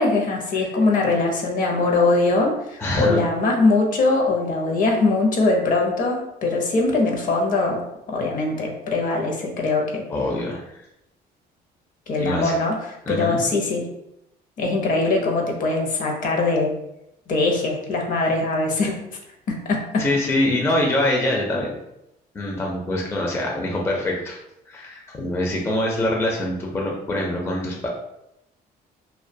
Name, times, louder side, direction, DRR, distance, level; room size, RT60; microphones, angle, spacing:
voice 1, 0.0-10.0 12.1-13.8 14.6-16.7 17.3-19.0 19.5-20.0, left 3 dB, 55° left, 1 dB, 0.6 m, -22 dB
voice 2, 2.8-3.2 10.1-10.6 12.2-12.5 13.1-13.4 20.0-21.7 22.3-24.4 24.7-27.9, left 1 dB, 15° left, -1 dB, 0.4 m, -24 dB
2.2 x 2.2 x 2.6 m, 0.83 s
cardioid pair, 110°, 17 cm